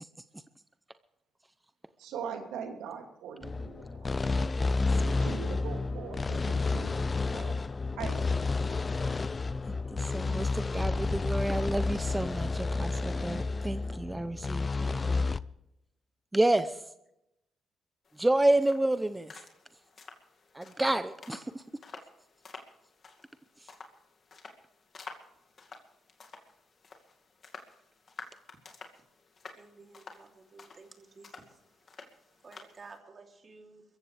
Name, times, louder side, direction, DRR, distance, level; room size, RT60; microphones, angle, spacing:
voice 1, 2.0-4.1 5.0-7.6 8.0-8.9, right 6 dB, 90° right, 3 dB, 2.5 m, -41 dB
sound 1, 3.4-15.4, left 3 dB, 30° left, 0.5 m, -30 dB
voice 2, 4.9-5.3 9.7-15.3 16.3-16.8 18.2-19.4 20.5-21.6, right 1 dB, 10° right, 11 dB, 0.7 m, -30 dB
sound 2, 18.1-33.0, left 4 dB, 45° left, 2.3 m, -51 dB
voice 3, 29.6-31.5 32.4-33.8, right 4 dB, 40° right, 2 dB, 3.1 m, -53 dB
23.5 x 14.5 x 3.4 m, 0.85 s
cardioid pair, 90°, 0 cm